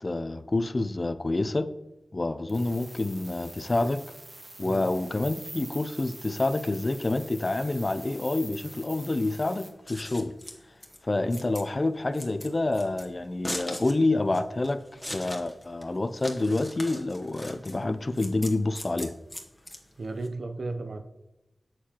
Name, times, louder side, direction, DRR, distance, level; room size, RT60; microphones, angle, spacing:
voice 1, 0.0-1.7 2.1-4.0 4.6-10.3 11.0-14.8 15.1-19.1, left 2 dB, 40° left, 0.4 m, -28 dB
sound 1, 2.5-9.7, right 2 dB, 35° right, 0.9 m, -45 dB
Scissors, 9.7-20.3, left 1 dB, 15° left, 1.0 m, -41 dB
voice 2, 20.0-21.0, right 3 dB, 70° right, 0.6 m, -34 dB
7.5 x 6.4 x 2.9 m
wide cardioid pair, 60°, 0 cm